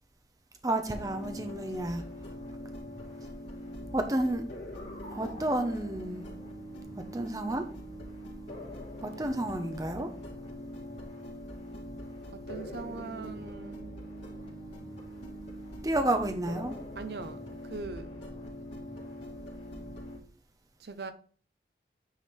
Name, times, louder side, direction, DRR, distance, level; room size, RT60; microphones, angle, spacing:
voice 1, 0.6-2.0 3.9-4.4 5.1-6.3 7.1-7.6 9.0-10.1 15.8-16.8, right 1 dB, 20° right, 0.7 m, -30 dB
sound 1, 0.9-20.2, equal, 85° left, 2.5 m, -43 dB
voice 2, 12.3-13.9 16.9-18.4 20.8-21.1, right 4 dB, 65° right, 0.6 m, -41 dB
9.2 x 3.3 x 4.4 m
head